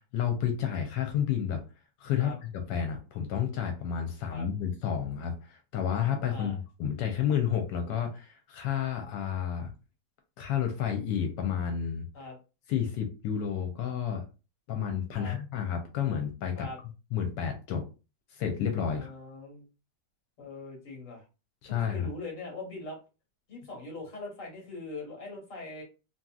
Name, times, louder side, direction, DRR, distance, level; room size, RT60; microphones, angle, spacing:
voice 1, 0.1-1.6 2.0-9.7 10.4-12.0 12.7-14.2 14.7-16.7 17.1-17.8 18.3-19.1 21.6-22.1, left 8 dB, 85° left, 4 dB, 1.2 m, -31 dB
voice 2, 6.3-6.6 9.0-9.2 12.1-12.4 15.2-15.4 16.5-16.8 18.9-19.7 20.4-21.2 21.7-23.0 23.5-25.8, left 2 dB, 50° left, -1 dB, 1.5 m, -42 dB
2.9 x 2.7 x 2.3 m, 0.31 s
omnidirectional pair, 1.9 m